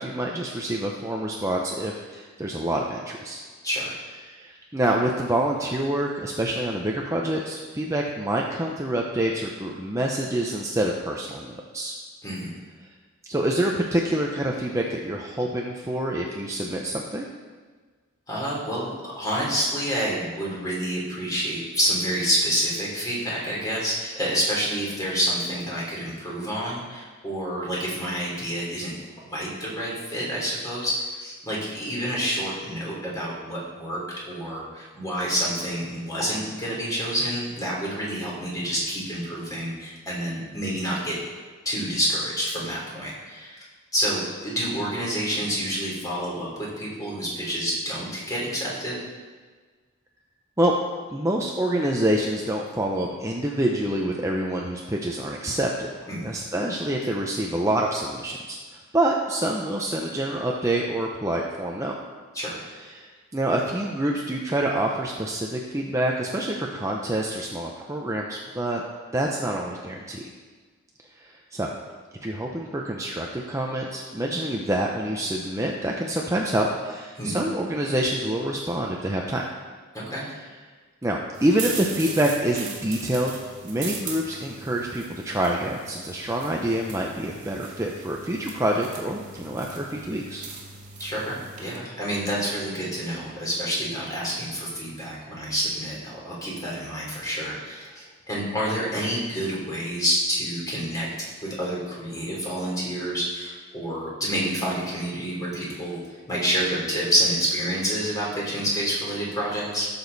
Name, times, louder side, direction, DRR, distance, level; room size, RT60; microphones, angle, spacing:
voice 1, 0.0-3.4 4.2-12.0 13.2-17.3 50.6-50.7 51.1-55.9 56.2-62.0 62.7-68.8 69.1-70.2 71.2-71.7 72.2-79.4 81.0-90.4, right 1 dB, 15° right, -1 dB, 0.7 m, -27 dB
voice 2, 3.6-4.0 12.2-12.5 18.3-18.9 19.2-28.9 29.3-34.0 34.3-41.2 41.6-43.6 43.9-49.0 56.1-56.2 62.3-62.6 77.2-77.4 79.9-80.3 91.0-101.1 101.4-106.0 106.3-109.9, equal, 20° left, -5 dB, 3.3 m, -28 dB
sound 1, 81.3-91.8, right 4 dB, 35° right, 2.2 m, -39 dB
16.0 x 7.1 x 4.1 m, 1.4 s
head